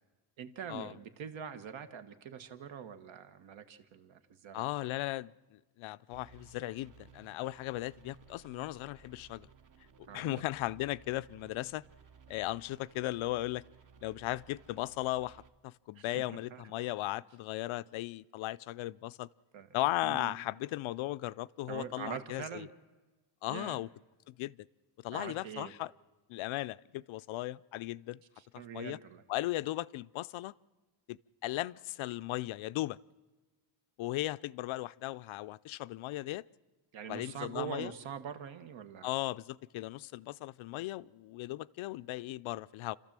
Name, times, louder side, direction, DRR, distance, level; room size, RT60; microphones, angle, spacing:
voice 1, 0.4-4.9 10.1-10.5 15.9-16.6 19.5-19.7 20.0-20.3 21.7-22.7 23.5-23.8 25.1-25.7 28.4-29.2 36.9-39.1, right 8 dB, 75° right, 1.4 m, -44 dB
voice 2, 4.5-9.5 10.1-11.8 12.3-13.6 14.0-19.3 19.7-22.7 23.4-23.9 24.3-24.7 25.0-25.9 26.3-28.2 28.7-29.0 29.3-30.5 31.1-33.0 34.0-36.4 37.1-37.9 39.0-43.0, left 17 dB, 80° left, 0.5 m, -37 dB
sound 1, 6.1-15.5, right 7 dB, 40° right, 1.0 m, -59 dB
28.0 x 13.0 x 7.4 m
cardioid pair, 150°, 47 cm